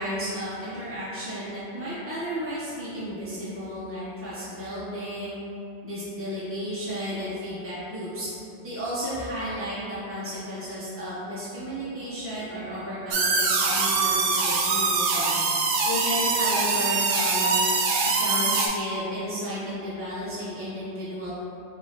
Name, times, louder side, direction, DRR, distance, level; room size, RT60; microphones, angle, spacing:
voice 1, 0.0-5.3 5.8-8.3 8.6-15.4 15.8-17.6 18.2-21.3, equal, 15° right, -11 dB, 0.5 m, -33 dB
sound 1, 13.1-18.7, right 4 dB, 90° right, 0.9 m, -23 dB
4.7 x 2.8 x 2.9 m, 2.8 s
omnidirectional pair, 1.2 m